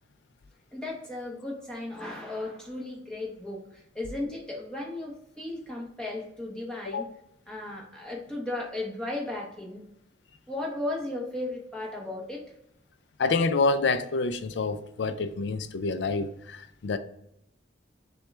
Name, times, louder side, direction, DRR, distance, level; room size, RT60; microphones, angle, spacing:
voice 1, 0.7-7.1 7.5-9.8 10.5-12.4, left 2 dB, 5° left, 1.0 m, -35 dB
voice 2, 13.2-17.0, left 3 dB, 70° left, 0.4 m, -27 dB
5.8 x 2.3 x 3.2 m
head